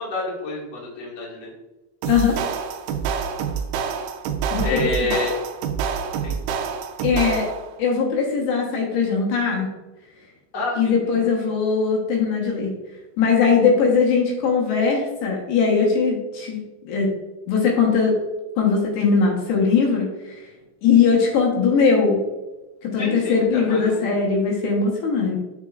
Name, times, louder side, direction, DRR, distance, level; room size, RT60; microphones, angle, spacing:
voice 1, 0.0-1.5 4.6-5.3 6.2-6.3 10.5-11.0 11.4-11.5 23.0-24.1, left 2 dB, 45° left, -5 dB, 1.2 m, -28 dB
sound 1, 2.0-7.7, right 7 dB, 90° right, 2.3 m, -27 dB
voice 2, 2.1-2.4 4.5-5.1 7.0-7.5 7.8-9.7 10.8-12.7 13.2-16.6 16.8-17.1 17.5-18.2 18.6-20.5 20.8-22.2 22.8-25.4, left 5 dB, 70° left, -1 dB, 3.1 m, -20 dB
7.3 x 6.9 x 2.4 m, 1.1 s
omnidirectional pair, 5.5 m